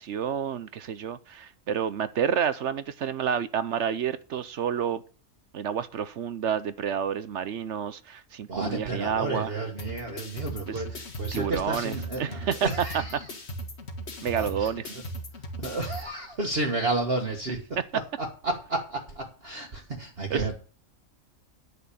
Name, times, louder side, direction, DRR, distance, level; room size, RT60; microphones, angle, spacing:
voice 1, 0.0-5.0 5.5-9.5 10.7-10.8 11.3-13.2 14.2-15.0 17.8-17.9 20.3-20.5, right 8 dB, 65° right, 1.0 m, -29 dB
voice 2, 8.5-13.2 14.4-14.7 15.6-17.7 18.2-20.6, right 2 dB, 45° right, 1.9 m, -31 dB
sound 1, 9.8-16.0, right 1 dB, 50° left, 2.1 m, -38 dB
10.0 x 6.5 x 8.6 m
omnidirectional pair, 1.4 m